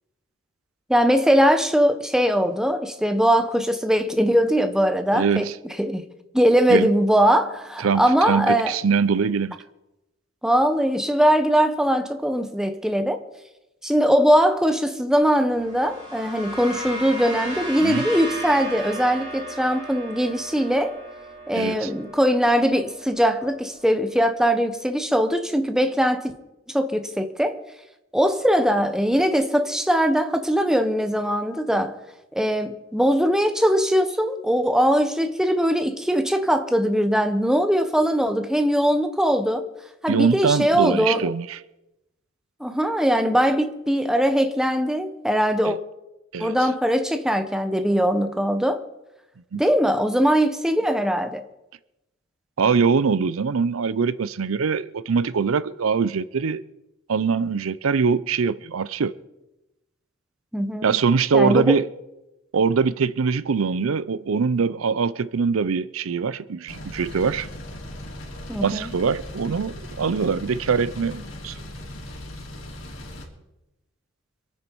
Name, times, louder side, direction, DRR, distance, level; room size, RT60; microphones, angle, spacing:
voice 1, 0.9-5.5 5.8-6.0 6.3-8.7 10.4-13.2 13.8-21.0 21.5-26.3 26.7-27.6 28.1-32.0 32.3-39.6 40.0-41.3 42.6-45.8 46.4-48.8 49.5-51.4 60.5-60.9 61.3-61.7 68.5-68.9, equal, 5° right, 1.0 m, -21 dB
voice 2, 5.1-5.6 6.7-6.9 7.8-9.6 17.8-18.0 21.5-21.9 40.1-41.6 45.7-45.8 46.3-46.7 49.5-49.6 52.6-56.6 57.1-59.1 60.8-61.9 62.5-67.5 68.6-71.6, right 5 dB, 90° right, 0.5 m, -23 dB
sound 1, 15.5-24.0, right 1 dB, 35° right, 5.3 m, -36 dB
sound 2, 66.7-73.3, left 1 dB, 90° left, 3.3 m, -38 dB
25.5 x 9.4 x 4.6 m
head